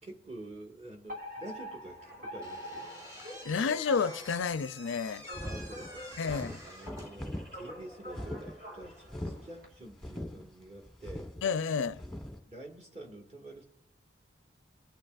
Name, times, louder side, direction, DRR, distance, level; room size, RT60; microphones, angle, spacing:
voice 1, 0.0-2.9 5.4-6.2 6.6-11.3 12.4-13.6, right 1 dB, 35° right, 1.8 m, -48 dB
Alarm, 1.1-9.7, equal, 50° right, 2.9 m, -46 dB
Slam / Squeak, 2.4-7.4, left 1 dB, 15° right, 1.4 m, -48 dB
voice 2, 3.4-5.2 6.2-6.6 11.4-12.0, left 5 dB, 85° left, 0.4 m, -30 dB
sound 1, 5.3-12.4, left 1 dB, ahead, 1.2 m, -42 dB
23.0 x 8.8 x 2.5 m
head